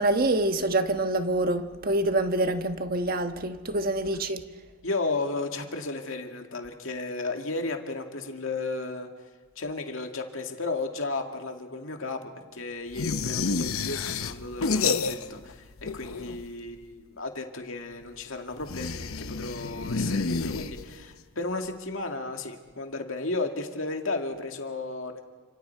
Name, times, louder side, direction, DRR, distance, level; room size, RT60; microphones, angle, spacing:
voice 1, 0.0-4.4, right 2 dB, 45° right, 7 dB, 1.3 m, -26 dB
voice 2, 4.8-9.1 9.6-25.2, left 3 dB, 70° left, 4 dB, 2.2 m, -34 dB
sound 1, 12.9-15.5 15.8-16.6 18.6-21.1, left 4 dB, 90° left, 0.8 m, -30 dB
29.5 x 27.0 x 4.6 m, 1.5 s
head